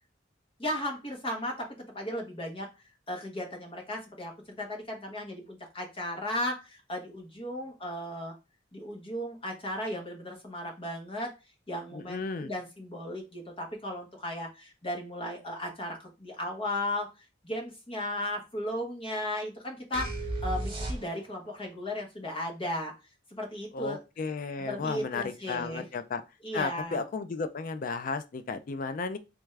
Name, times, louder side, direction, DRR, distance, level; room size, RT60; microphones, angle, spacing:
voice 1, 0.6-2.7 3.1-4.3 4.6-8.3 8.7-11.3 11.7-17.1 17.4-22.9 23.3-24.0 24.6-25.8 26.4-27.0, left 1 dB, 30° left, 1.0 m, -35 dB
voice 2, 11.9-12.5 23.7-26.2 26.5-29.2, left 4 dB, 45° left, 0.4 m, -34 dB
sound 1, 19.9-21.5, right 1 dB, 30° right, 1.0 m, -33 dB
3.4 x 2.3 x 3.2 m
head